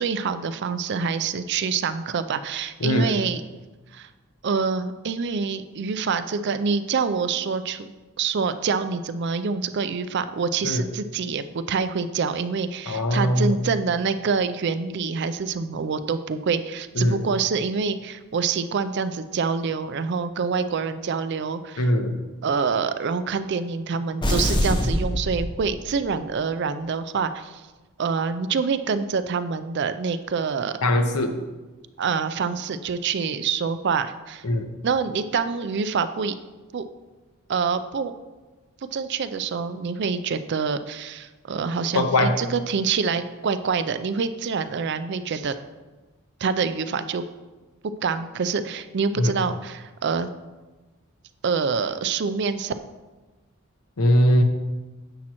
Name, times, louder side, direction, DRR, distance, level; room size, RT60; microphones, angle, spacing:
voice 1, 0.0-3.4 3.9-4.1 4.4-7.9 8.2-21.9 22.4-27.6 28.0-30.8 32.0-34.4 34.8-36.3 36.7-36.8 37.5-38.1 38.9-45.5 46.4-47.3 48.0-50.3 51.4-52.7, right 5 dB, 50° right, 11 dB, 0.4 m, -26 dB
voice 2, 2.8-3.2 10.6-10.8 12.9-13.6 16.9-17.2 21.8-22.2 30.8-31.4 34.4-34.7 41.9-42.5 49.2-49.3 54.0-54.4, left 1 dB, 90° left, 6 dB, 0.9 m, -21 dB
sound 1, 24.2-26.1, equal, 20° left, 0.8 m, -24 dB
10.0 x 7.4 x 3.0 m, 1.2 s
head